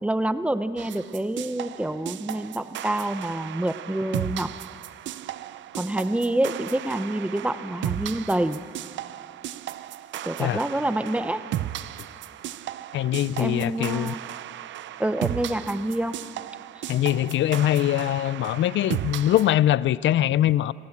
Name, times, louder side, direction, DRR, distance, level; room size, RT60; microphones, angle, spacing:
voice 1, 0.0-4.5 5.7-8.6 10.2-11.4 13.4-14.2 15.0-16.2, right 1 dB, 5° right, 12 dB, 0.8 m, -27 dB
sound 1, 0.8-19.5, right 13 dB, 70° right, 0.6 m, -35 dB
voice 2, 12.9-14.1 16.9-20.7, left 13 dB, 70° left, 19 dB, 0.5 m, -22 dB
27.0 x 14.5 x 7.3 m, 2.3 s
cardioid pair, 90°, 20 cm